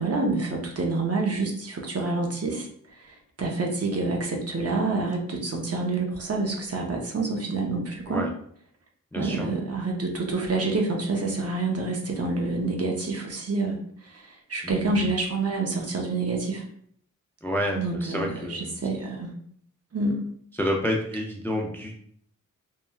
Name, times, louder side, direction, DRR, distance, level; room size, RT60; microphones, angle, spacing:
voice 1, 0.0-2.7 3.4-8.2 9.1-13.8 14.0-16.6 17.8-19.3 19.9-20.2, right 3 dB, 50° right, 1 dB, 0.6 m, -27 dB
voice 2, 9.1-9.5 14.6-15.1 17.4-18.7 20.5-22.0, equal, 5° left, 0 dB, 0.3 m, -29 dB
3.1 x 2.1 x 2.2 m, 0.63 s
wide cardioid pair, 85°, 32 cm